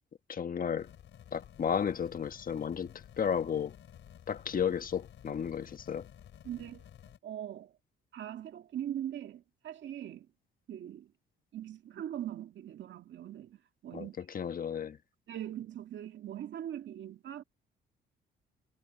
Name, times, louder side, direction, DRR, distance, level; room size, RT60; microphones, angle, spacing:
voice 1, 0.3-0.9 1.3-3.7 4.3-6.1 13.9-15.0, left 7 dB, 45° left, 1.3 m, -33 dB
sound 1, 0.8-7.2, left 10 dB, 70° left, 5.0 m, -53 dB
voice 2, 6.4-6.8 7.2-7.8 8.1-10.3 10.7-11.1 11.5-14.2 15.3-17.4, right 11 dB, 65° right, 2.0 m, -41 dB
cardioid pair, 90°, 20 cm